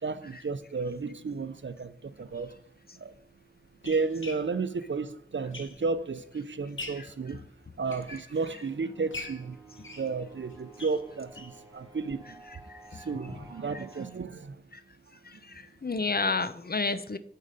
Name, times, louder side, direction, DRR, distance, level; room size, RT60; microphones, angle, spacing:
voice 1, 0.0-2.6 2.9-3.1 3.8-7.4 7.8-9.6 9.9-12.4 12.9-14.6, right 4 dB, 75° right, 0.5 m, -33 dB
sound 1, 2.3-2.4 3.1-6.1 6.5-7.2 7.7-8.7 9.1-11.6 12.0-12.1 12.4-12.5 12.8-12.9, left 3 dB, 85° left, 1.0 m, -44 dB
sound 2, 8.5-14.1, right 2 dB, 15° right, 3.6 m, -52 dB
voice 2, 15.2-17.2, left 3 dB, 55° left, 0.6 m, -31 dB
7.4 x 6.6 x 5.2 m
wide cardioid pair, 45°, 19 cm